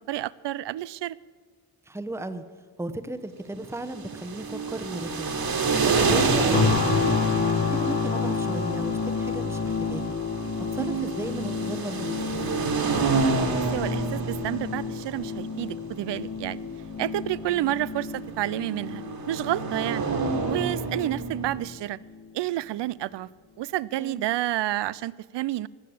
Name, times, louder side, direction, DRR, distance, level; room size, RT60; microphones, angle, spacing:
voice 1, 0.1-1.2 10.8-11.1 13.7-16.6 17.0-20.0 20.5-22.0 22.3-23.3 23.6-25.7, right 14 dB, 70° right, 20 dB, 0.5 m, -30 dB
voice 2, 1.9-2.4 2.8-5.4 5.8-7.2 7.7-10.2 10.7-12.4 17.5-17.8 24.0-24.3, right 1 dB, 5° right, 9 dB, 1.0 m, -35 dB
sound 1, 3.8-21.7, right 4 dB, 55° right, 2.2 m, -29 dB
sound 2, 6.5-21.5 22.0-22.2, left 5 dB, 55° left, 2.0 m, -30 dB
19.0 x 6.6 x 8.6 m, 1.6 s
cardioid pair, 60°, 44 cm